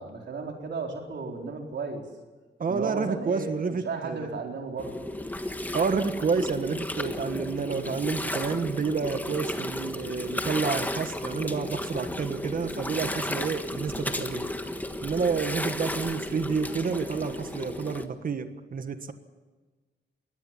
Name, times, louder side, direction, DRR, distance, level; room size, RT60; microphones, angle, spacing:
voice 1, 0.0-2.0 2.7-3.5 3.8-5.0, right 4 dB, 75° right, 2 dB, 4.1 m, -34 dB
voice 2, 2.6-4.3 5.7-14.5 15.0-19.1, right 5 dB, 50° right, 9 dB, 1.5 m, -29 dB
Gurgling, 4.8-18.0, left 1 dB, 10° left, 1.4 m, -33 dB
23.0 x 17.5 x 7.4 m, 1.3 s
wide cardioid pair, 130°, 18 cm